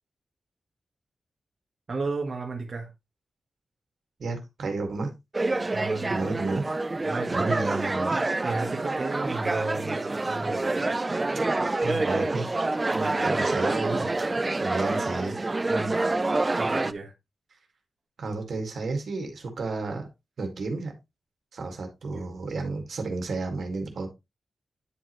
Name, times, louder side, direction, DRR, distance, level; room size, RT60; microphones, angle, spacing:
voice 1, 1.9-2.9 5.7-6.1 7.1-7.9 8.4-10.9 12.9-13.4 15.7-16.0 16.6-17.1 22.1-22.3, right 3 dB, 40° right, 1.4 m, -33 dB
voice 2, 4.2-5.1 6.1-6.7 7.3-8.2 11.8-12.4 13.2-14.1 14.6-15.5 18.2-20.1 20.4-20.9 21.5-24.1, right 3 dB, 65° right, 2.0 m, -31 dB
sound 1, 5.3-16.9, right 2 dB, 25° right, 0.4 m, -27 dB
9.8 x 4.9 x 3.1 m
wide cardioid pair, 145°, 0 cm